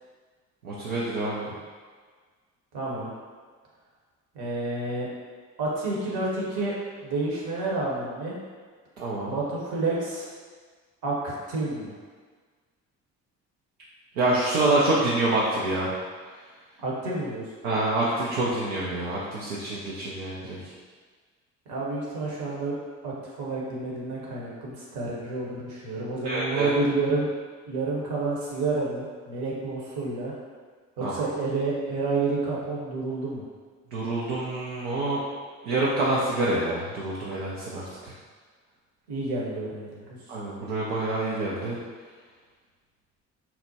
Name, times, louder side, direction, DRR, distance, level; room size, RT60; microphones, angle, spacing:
voice 1, 0.6-1.5 9.0-9.3 14.2-15.9 17.6-20.6 26.2-26.7 31.0-31.3 33.9-35.2 35.6-38.1 40.3-41.8, right 2 dB, 80° right, -7 dB, 0.6 m, -27 dB
voice 2, 2.7-3.1 4.3-5.1 5.6-6.7 7.0-8.3 9.3-10.3 11.0-11.9 16.8-17.4 21.7-22.8 23.0-27.3 27.7-30.3 31.0-33.5 39.1-40.1, right 3 dB, 60° right, -5 dB, 1.1 m, -29 dB
4.2 x 2.1 x 2.8 m, 1.5 s
figure-of-eight pair, 45°, 43 cm